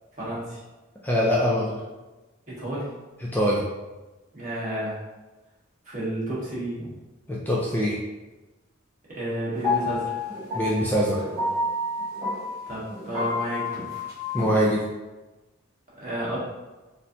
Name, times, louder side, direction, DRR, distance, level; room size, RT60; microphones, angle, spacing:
voice 1, 0.2-0.6 2.5-2.8 4.3-5.0 5.8-6.9 9.1-10.1 12.7-13.9 15.9-16.4, right 1 dB, 35° right, -8 dB, 1.3 m, -31 dB
voice 2, 1.0-1.8 3.2-3.6 7.3-8.0 10.5-11.2 14.3-14.8, equal, 10° left, -5 dB, 0.3 m, -23 dB
sound 1, 9.5-14.8, left 2 dB, 10° right, 1.1 m, -30 dB
4.1 x 2.6 x 2.7 m, 1.1 s
head